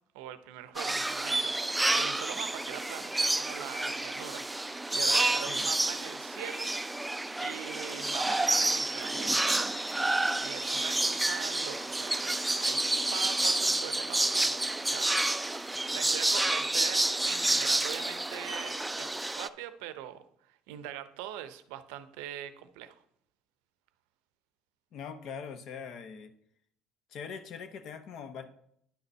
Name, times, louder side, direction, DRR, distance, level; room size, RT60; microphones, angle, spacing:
voice 1, 0.1-6.7 7.4-9.8 10.4-12.8 13.1-14.5 14.8-15.1 15.4-23.0, right 12 dB, 85° right, 12 dB, 0.5 m, -43 dB
sound 1, 0.7-19.5, right 2 dB, 10° right, 0.3 m, -29 dB
voice 2, 24.9-26.3 27.1-28.4, left 6 dB, 60° left, 10 dB, 0.8 m, -42 dB
10.0 x 4.0 x 5.4 m, 0.72 s
supercardioid pair, 85°, 0 cm